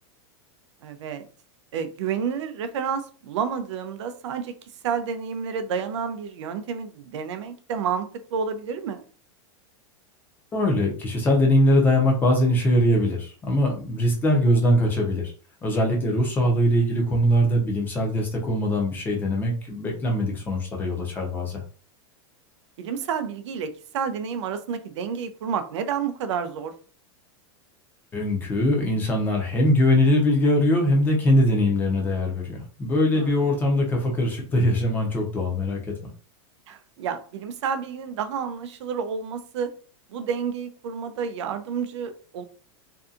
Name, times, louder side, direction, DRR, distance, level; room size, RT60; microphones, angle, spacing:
voice 1, 0.8-1.3 1.7-4.6 4.8-9.0 22.8-26.7 33.1-33.4 36.7-39.7 40.1-42.4, right 7 dB, 85° right, 10 dB, 0.4 m, -30 dB
voice 2, 10.5-15.3 15.6-21.6 28.1-35.9, left 1 dB, 15° left, 0 dB, 0.6 m, -22 dB
2.7 x 2.3 x 2.4 m, 0.39 s
supercardioid pair, 165°, 15 cm